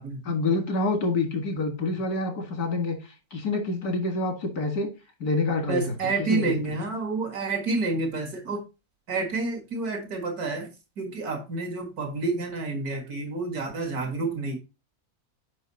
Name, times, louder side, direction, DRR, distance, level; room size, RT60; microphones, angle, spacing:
voice 1, 0.3-4.9 5.2-6.5, left 3 dB, 90° left, 2.4 m, -27 dB
voice 2, 5.7-8.6 9.1-14.6, right 3 dB, 80° right, 2.3 m, -29 dB
7.1 x 5.5 x 4.0 m
omnidirectional pair, 1.6 m